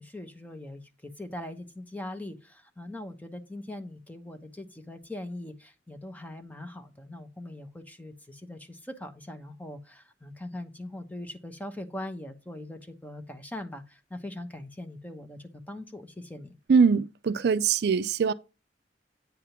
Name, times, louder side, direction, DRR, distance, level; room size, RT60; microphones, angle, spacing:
voice 1, 0.0-16.6, left 1 dB, 10° left, 0.9 m, -41 dB
voice 2, 16.7-18.3, right 5 dB, 65° right, 0.4 m, -22 dB
9.1 x 3.6 x 5.8 m
head